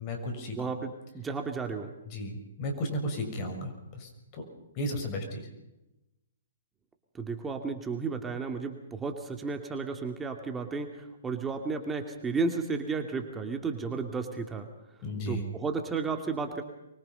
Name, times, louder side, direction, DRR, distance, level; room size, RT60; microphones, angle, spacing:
voice 1, 0.0-0.7 2.1-4.5 4.7-5.5 15.0-15.4, left 1 dB, 35° left, 4 dB, 6.2 m, -34 dB
voice 2, 0.6-1.9 7.1-14.7 15.3-16.6, right 4 dB, 10° right, 5 dB, 2.3 m, -33 dB
25.0 x 22.5 x 5.5 m, 0.94 s
figure-of-eight pair, 125°, 0 cm